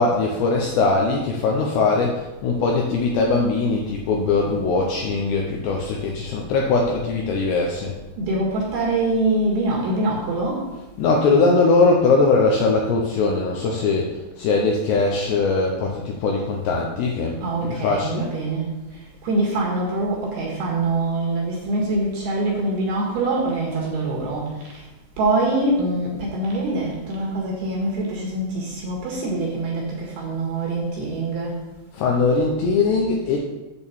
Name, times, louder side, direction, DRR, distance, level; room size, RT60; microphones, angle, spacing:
voice 1, 0.0-7.9 11.0-18.3 31.9-33.4, left 3 dB, 80° left, 0 dB, 2.6 m, -21 dB
voice 2, 8.2-10.7 17.4-24.9 25.2-31.6, right 2 dB, 65° right, -3 dB, 3.0 m, -24 dB
8.8 x 4.4 x 7.1 m, 1.0 s
omnidirectional pair, 5.8 m